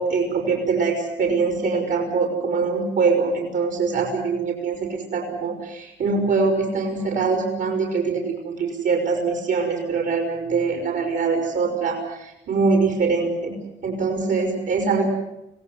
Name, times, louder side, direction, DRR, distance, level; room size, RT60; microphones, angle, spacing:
voice 1, 0.0-13.5 13.8-15.1, right 4 dB, 65° right, 2 dB, 5.4 m, -23 dB
25.0 x 17.5 x 9.6 m, 0.89 s
cardioid pair, 90°, 20 cm